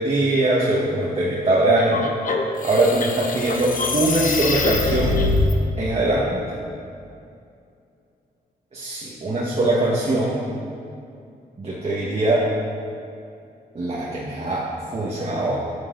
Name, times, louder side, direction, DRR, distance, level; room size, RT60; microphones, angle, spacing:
voice 1, 0.0-2.1 2.6-5.2 5.8-6.6 8.7-10.4 11.6-12.4 13.7-14.6 14.9-15.6, right 2 dB, 40° right, -5 dB, 1.2 m, -22 dB
sound 1, 1.8-5.5, left 3 dB, 55° left, 0.8 m, -24 dB
11.0 x 7.9 x 2.5 m, 2.5 s
cardioid pair, 75°, 16 cm